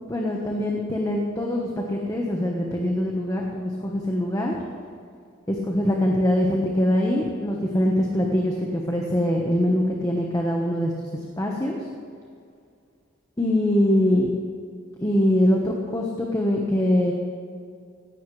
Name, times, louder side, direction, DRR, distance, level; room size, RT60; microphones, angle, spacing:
voice 1, 0.1-4.6 5.5-10.9 11.4-11.8 13.4-14.3 15.0-17.1, left 1 dB, 15° left, -1 dB, 1.3 m, -23 dB
18.0 x 16.0 x 3.4 m, 2.3 s
head